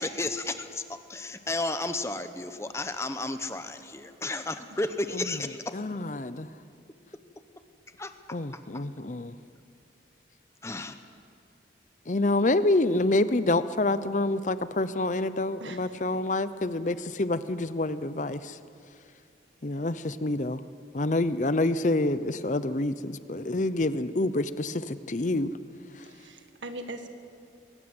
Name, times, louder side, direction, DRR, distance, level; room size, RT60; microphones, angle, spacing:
voice 1, 0.0-5.7 8.0-8.6 10.6-11.0, left 2 dB, 15° left, 9 dB, 0.9 m, -33 dB
voice 2, 5.7-6.5 8.3-9.3 12.1-18.5 19.6-20.6 20.9-25.5, left 2 dB, 40° left, 13 dB, 0.7 m, -27 dB
voice 3, 15.6-16.0 26.0-27.1, right 2 dB, 90° right, 7 dB, 1.8 m, -41 dB
21.5 x 19.0 x 7.9 m, 2.5 s
head